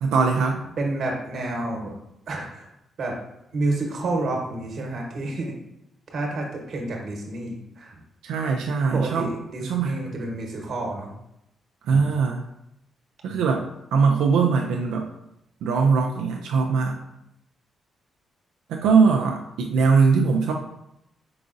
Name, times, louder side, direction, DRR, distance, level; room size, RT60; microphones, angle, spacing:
voice 1, 0.0-0.6 8.2-9.3 9.6-9.9 11.9-12.4 13.2-15.1 15.6-17.0 18.7-20.5, right 5 dB, 85° right, 1 dB, 0.3 m, -21 dB
voice 2, 0.8-1.9 2.3-2.7 3.0-3.2 3.5-5.5 6.1-8.0 8.9-11.1 11.9-12.0 13.3-13.5 18.8-18.9, right 2 dB, 60° right, 0 dB, 1.1 m, -29 dB
4.7 x 3.8 x 2.5 m, 0.83 s
cardioid pair, 70°, 0 cm